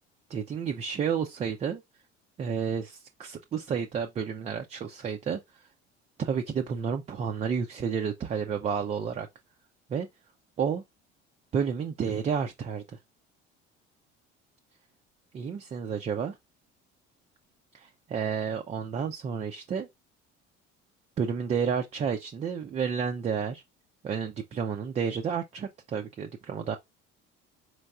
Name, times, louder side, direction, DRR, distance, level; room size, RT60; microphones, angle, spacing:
voice 1, 0.3-1.8 2.4-5.6 6.2-9.3 9.9-10.1 10.6-10.8 11.5-13.0 15.3-16.3 17.7-19.9 21.2-23.6 24.0-26.8, right 6 dB, 20° right, 0.4 m, -31 dB
4.4 x 3.0 x 2.3 m
figure-of-eight pair, 60°, 36 cm